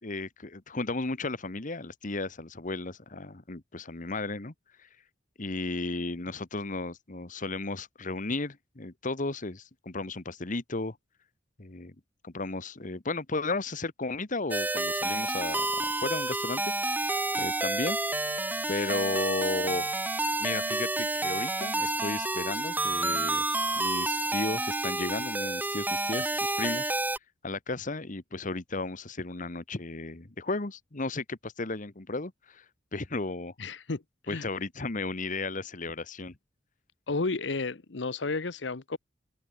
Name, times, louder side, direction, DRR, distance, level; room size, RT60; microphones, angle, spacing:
voice 1, 0.0-4.5 4.8-4.9 5.4-11.0 11.6-11.9 12.2-17.1 17.4-18.0 18.7-19.9 20.4-23.4 23.8-26.9 27.4-32.6 32.9-33.5 34.3-36.3, left 3 dB, 45° left, 1.5 m, -34 dB
sound 1, 14.5-27.2, right 2 dB, 10° right, 1.1 m, -29 dB
voice 2, 33.6-34.5 37.1-39.0, left 3 dB, 75° left, 1.0 m, -32 dB
open air
head